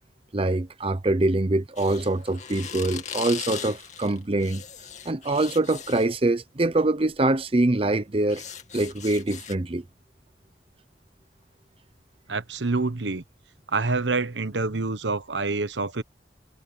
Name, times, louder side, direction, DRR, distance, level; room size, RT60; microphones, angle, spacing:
voice 1, 0.3-4.6 5.0-8.4 8.7-9.8, right 2 dB, 30° right, 0.8 m, -24 dB
sound 1, 1.8-6.1 7.1-7.3 7.7-9.5, left 8 dB, 40° left, 2.6 m, -39 dB
voice 2, 12.3-13.2 13.7-16.0, right 3 dB, 85° right, 1.2 m, -27 dB
head